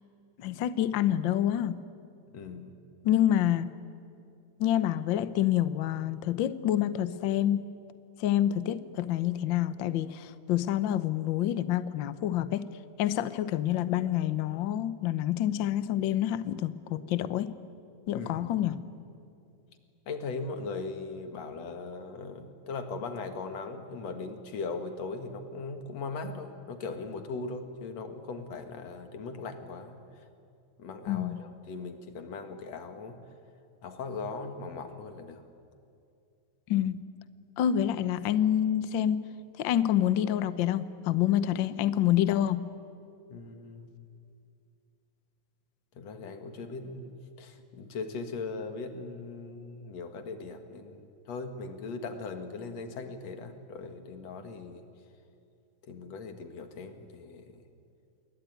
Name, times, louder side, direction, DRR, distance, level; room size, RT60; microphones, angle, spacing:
voice 1, 0.4-1.8 3.0-3.7 4.6-7.6 8.2-12.7 13.0-17.5 18.1-18.8 31.1-31.4 36.7-37.0 37.6-39.2 39.6-42.6, left 11 dB, 85° left, 14 dB, 1.0 m, -27 dB
voice 2, 2.3-2.7 18.1-18.5 20.1-30.2 30.8-33.2 33.8-35.4 43.3-43.9 45.9-54.9 55.8-57.6, left 4 dB, 60° left, 7 dB, 3.0 m, -39 dB
28.0 x 22.5 x 9.4 m, 2.5 s
omnidirectional pair, 3.4 m